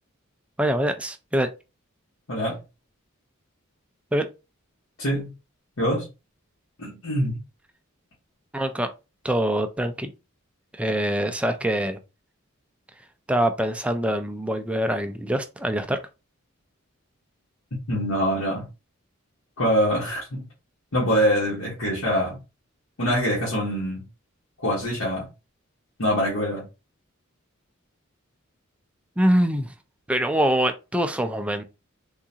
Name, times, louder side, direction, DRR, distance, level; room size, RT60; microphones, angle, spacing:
voice 1, 0.6-1.5 4.1-4.3 8.5-8.9 9.2-10.1 10.7-12.0 13.3-16.0 29.2-29.7 30.1-31.6, right 1 dB, 5° right, 0.3 m, -24 dB
voice 2, 2.3-2.6 5.0-5.3 5.8-6.1 6.8-7.4 17.9-18.7 19.6-20.5 20.9-22.4 23.0-24.1 24.6-25.3 26.0-26.7, equal, 85° left, 1.2 m, -24 dB
3.7 x 2.4 x 2.8 m
head